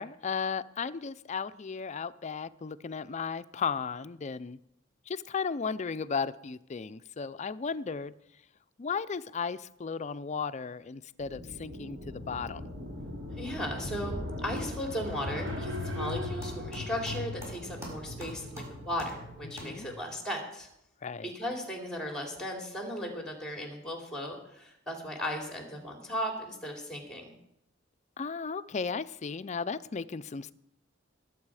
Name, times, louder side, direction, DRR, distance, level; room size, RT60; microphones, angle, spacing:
voice 1, 0.0-4.6 5.1-8.1 8.8-12.6 19.6-19.9 21.0-21.3 28.2-30.5, left 5 dB, 35° left, 14 dB, 0.4 m, -35 dB
sound 1, 11.2-20.0, left 2 dB, 70° right, 2.7 m, -39 dB
voice 2, 13.4-20.7 21.2-27.3, equal, 5° left, 2 dB, 3.0 m, -36 dB
sound 2, 14.6-20.2, equal, 15° right, 5.1 m, -48 dB
20.5 x 8.3 x 4.8 m, 0.81 s
head